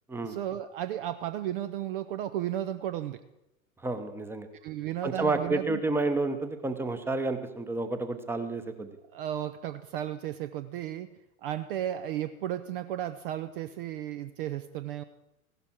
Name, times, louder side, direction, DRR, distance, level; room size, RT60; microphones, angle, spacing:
voice 1, 0.2-3.2 4.6-5.8 9.1-11.1 11.4-15.0, right 11 dB, 40° right, 11 dB, 0.6 m, -34 dB
voice 2, 3.8-4.5 5.0-8.9, right 3 dB, 5° right, 9 dB, 0.9 m, -30 dB
16.0 x 12.0 x 4.4 m, 0.94 s
figure-of-eight pair, 90°, 42 cm